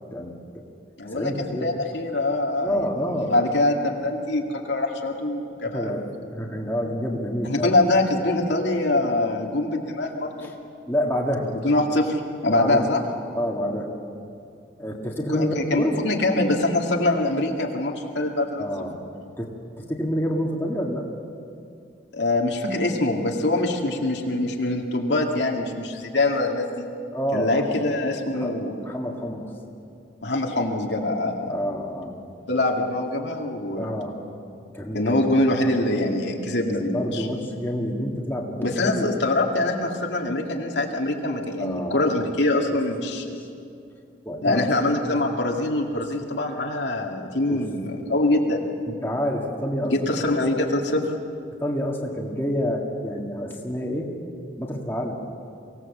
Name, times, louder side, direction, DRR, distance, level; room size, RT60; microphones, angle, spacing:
voice 1, 0.1-0.6 1.1-1.7 2.6-3.3 5.6-7.7 10.4-10.5 10.9-11.5 12.5-12.9 13.3-13.9 14.8-16.0 18.6-19.1 19.4-21.1 27.1-27.7 28.4-28.5 28.8-29.5 31.5-32.1 33.8-34.1 34.7-35.3 36.7-39.0 41.6-42.0 43.4-43.5 44.3-44.7 45.9-46.1 47.5-47.7 48.9-50.3 51.6-54.1 54.6-55.2, equal, 10° left, -1 dB, 1.9 m, -28 dB
voice 2, 1.0-2.8 3.2-5.9 7.4-10.5 11.5-13.0 15.3-18.6 22.1-26.9 27.3-28.7 30.2-31.6 32.5-33.9 34.9-37.3 38.6-43.4 44.4-48.6 49.8-51.2, left 2 dB, 80° left, 1 dB, 2.1 m, -24 dB
24.0 x 17.5 x 7.3 m, 2.5 s
head